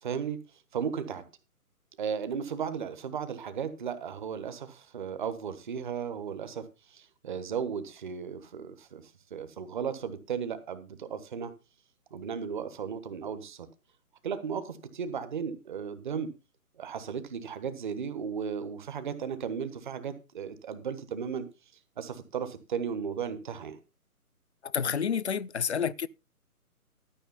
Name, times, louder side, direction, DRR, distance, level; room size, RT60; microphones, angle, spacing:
voice 1, 0.0-0.4 0.7-1.2 2.0-6.6 6.9-9.0 9.3-11.5 12.1-13.7 14.2-16.3 16.8-21.4 22.0-23.8, right 7 dB, 30° right, 1.3 m, -35 dB
voice 2, 24.7-26.1, left 7 dB, 50° left, 0.5 m, -29 dB
13.0 x 6.2 x 5.6 m
figure-of-eight pair, 150°, 45 cm